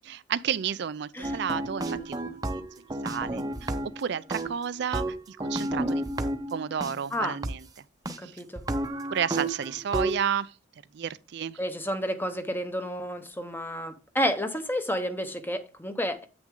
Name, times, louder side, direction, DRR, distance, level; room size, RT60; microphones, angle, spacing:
voice 1, 0.0-2.6 3.0-7.7 8.2-8.3 9.1-10.5 10.9-11.6, right 8 dB, 60° right, 0.4 m, -32 dB
sound 1, 1.2-4.0 4.3-6.9 7.4-7.5 8.1-8.2 8.6-10.2, right 1 dB, 20° right, 0.7 m, -31 dB
voice 2, 11.6-16.3, equal, 10° left, 0.8 m, -30 dB
8.6 x 6.1 x 3.7 m
head